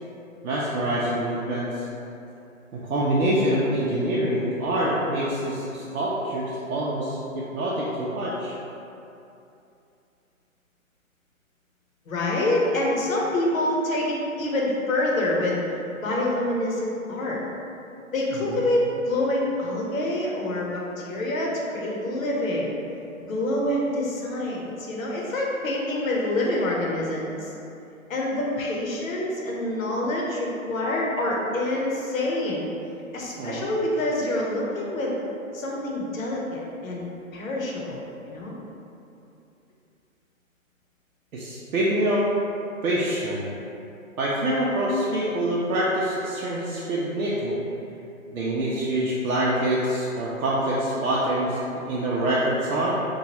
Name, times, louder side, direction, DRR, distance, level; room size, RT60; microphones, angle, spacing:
voice 1, 0.4-1.8 2.7-8.5 18.5-18.6 33.4-33.7 41.3-42.2 42.8-43.5 44.2-47.6 48.3-52.9, right 1 dB, 90° right, -6 dB, 0.6 m, -25 dB
voice 2, 12.1-15.6 16.0-17.4 18.1-22.8 23.3-27.5 28.1-32.7 33.1-35.1 35.5-37.1 37.3-38.6, left 1 dB, 70° left, -3 dB, 0.8 m, -26 dB
3.0 x 2.2 x 2.9 m, 2.8 s
hypercardioid pair, 155°, 42 cm